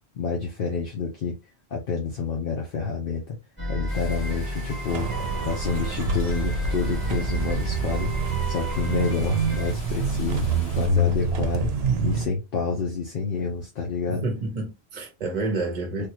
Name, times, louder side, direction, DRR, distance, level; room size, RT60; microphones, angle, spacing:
voice 1, 0.1-1.4 1.7-3.4 3.7-5.1 5.4-10.5 10.7-11.7 12.0-14.3 16.0-16.1, left 5 dB, 60° left, 0.8 m, -28 dB
sound 1, 3.6-9.7, equal, 10° left, 1.3 m, -33 dB
sound 2, 3.9-10.9, equal, 80° left, 1.8 m, -45 dB
sound 3, 4.9-12.3, right 3 dB, 75° right, 0.8 m, -26 dB
voice 2, 14.1-16.1, right 3 dB, 45° right, 0.8 m, -29 dB
3.4 x 2.3 x 2.8 m
omnidirectional pair, 1.1 m